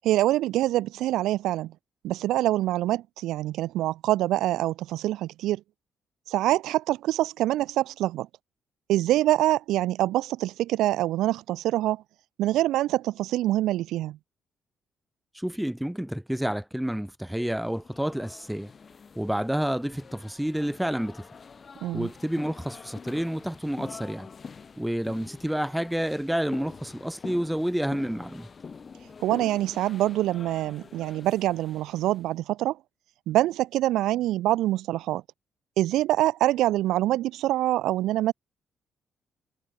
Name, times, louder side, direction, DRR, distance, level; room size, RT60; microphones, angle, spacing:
voice 1, 0.0-1.7 2.0-5.6 6.3-8.3 8.9-12.0 12.4-14.2 21.8-22.1 29.2-32.8 33.3-35.2 35.8-38.3, right 15 dB, 85° right, 0.5 m, -25 dB
voice 2, 15.3-18.7 19.2-21.3 21.9-24.3 24.8-28.5, equal, 5° right, 1.2 m, -29 dB
sound 1, 17.5-32.3, left 5 dB, 40° left, 2.6 m, -45 dB
cardioid pair, 90°, 0 cm